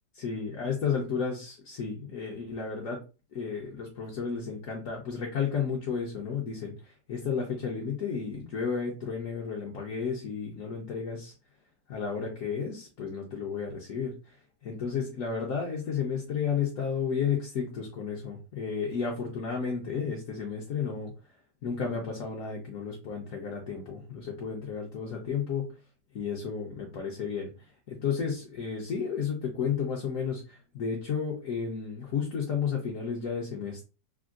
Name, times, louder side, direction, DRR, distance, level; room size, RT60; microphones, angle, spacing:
voice 1, 0.1-3.0 3.3-11.3 11.9-14.4 14.6-21.1 21.6-25.7 26.1-27.5 27.9-33.8, left 6 dB, 65° left, -1 dB, 0.8 m, -32 dB
3.4 x 2.2 x 2.4 m, 0.32 s
omnidirectional pair, 1.9 m